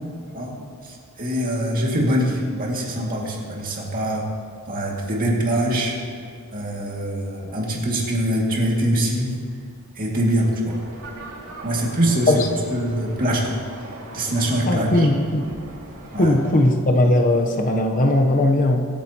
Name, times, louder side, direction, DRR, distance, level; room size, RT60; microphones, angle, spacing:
voice 1, 0.3-4.3 4.7-6.0 6.5-9.4 10.0-10.8 11.6-12.4 12.7-13.5 14.1-15.1 16.1-16.3, right 1 dB, 40° right, -2 dB, 2.2 m, -23 dB
sound 1, 10.7-16.7, right 2 dB, 85° right, 2.2 m, -40 dB
voice 2, 14.7-15.4 16.2-18.9, left 1 dB, 40° left, 3 dB, 0.8 m, -18 dB
24.0 x 8.9 x 2.9 m, 2.2 s
head